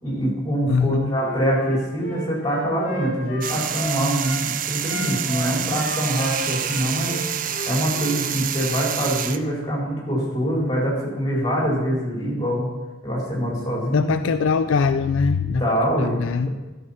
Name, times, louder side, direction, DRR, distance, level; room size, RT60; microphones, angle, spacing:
voice 1, 0.0-12.7 13.0-14.1 15.5-16.5, equal, 20° left, -5 dB, 4.3 m, -24 dB
voice 2, 0.7-1.2 13.9-15.6 16.0-16.5, left 5 dB, 70° left, 11 dB, 0.4 m, -22 dB
Wind instrument woodwind instrument, 1.1-4.4 4.8-8.2, left 1 dB, 40° left, 2.5 m, -34 dB
sound 1, 3.4-9.4, right 9 dB, 40° right, 0.4 m, -28 dB
13.5 x 6.8 x 5.7 m, 1.2 s
head